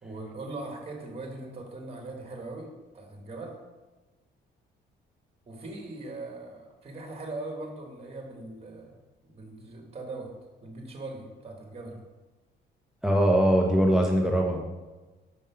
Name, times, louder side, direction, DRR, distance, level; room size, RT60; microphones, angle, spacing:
voice 1, 0.0-2.7 2.9-3.6 5.5-9.0 9.2-10.3 10.6-12.0, right 2 dB, 30° right, 2 dB, 1.5 m, -40 dB
voice 2, 13.0-14.8, equal, 5° right, 1 dB, 0.8 m, -22 dB
5.4 x 5.0 x 5.6 m, 1.2 s
cardioid pair, 90°, 20 cm